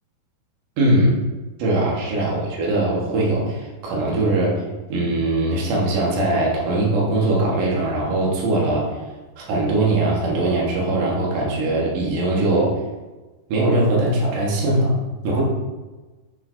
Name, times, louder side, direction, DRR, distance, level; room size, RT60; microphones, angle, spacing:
voice 1, 0.8-1.2 1.6-4.6 4.9-9.0 9.4-12.8 13.5-15.0 15.2-15.4, right 2 dB, 60° right, -4 dB, 2.5 m, -21 dB
7.5 x 5.8 x 2.7 m, 1.2 s
omnidirectional pair, 5.1 m